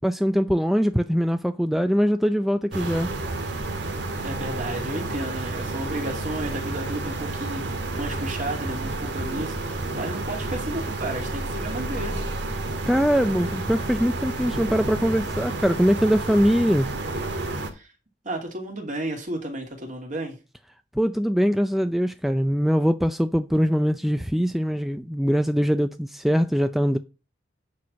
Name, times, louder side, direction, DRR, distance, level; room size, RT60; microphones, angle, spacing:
voice 1, 0.0-3.1 12.9-16.9 21.0-27.0, equal, ahead, 0.4 m, -22 dB
sound 1, 2.7-17.7, right 2 dB, 70° right, 1.8 m, -30 dB
voice 2, 4.2-12.2 17.7-17.9 18.2-20.3, right 1 dB, 45° right, 2.6 m, -32 dB
9.4 x 4.4 x 6.2 m
head